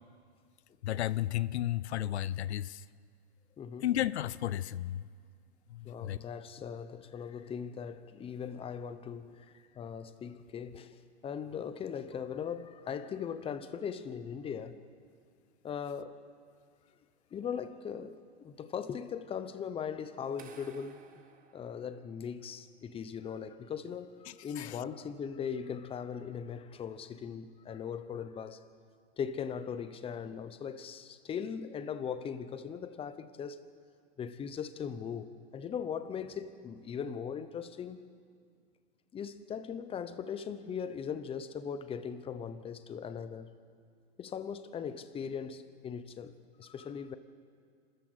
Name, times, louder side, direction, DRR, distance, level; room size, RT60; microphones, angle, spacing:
voice 1, 0.8-2.8 3.8-5.0 5.7-6.2 24.3-24.8, left 13 dB, 85° left, 0.6 m, -33 dB
voice 2, 3.6-3.9 5.8-9.5 9.7-14.8 15.6-16.2 17.3-21.0 21.5-24.1 24.4-28.6 29.2-33.6 34.2-38.0 39.1-43.5 44.2-47.1, left 7 dB, 15° left, 0.9 m, -39 dB
sound 1, 20.4-22.5, right 7 dB, 25° right, 1.7 m, -57 dB
26.5 x 13.5 x 8.1 m
hypercardioid pair, 130°, 32 cm